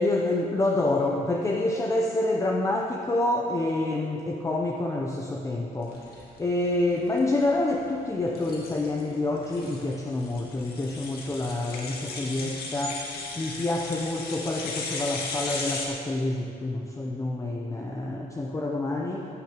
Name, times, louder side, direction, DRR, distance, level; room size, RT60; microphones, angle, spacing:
voice 1, 0.0-6.1 6.4-13.0 13.4-19.3, left 2 dB, 20° left, 0 dB, 0.8 m, -27 dB
sound 1, 5.9-15.9, left 3 dB, 75° left, 2.1 m, -37 dB
15.5 x 6.5 x 6.7 m, 2.5 s
cardioid pair, 130°, 16 cm